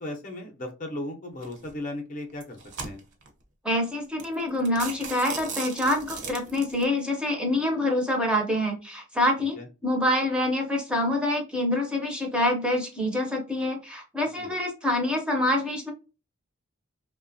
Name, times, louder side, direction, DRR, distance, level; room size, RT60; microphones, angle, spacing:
voice 1, 0.0-3.0 9.6-9.7 14.4-14.6, left 1 dB, 40° left, 3 dB, 0.5 m, -36 dB
sound 1, 1.4-1.7 2.3-3.3 3.8-3.9 4.2-4.3 4.6-6.8, right 5 dB, 55° right, 0.7 m, -37 dB
voice 2, 3.6-9.6 9.8-15.9, left 1 dB, 5° right, 1 dB, 0.5 m, -26 dB
2.8 x 2.2 x 2.5 m, 0.32 s
head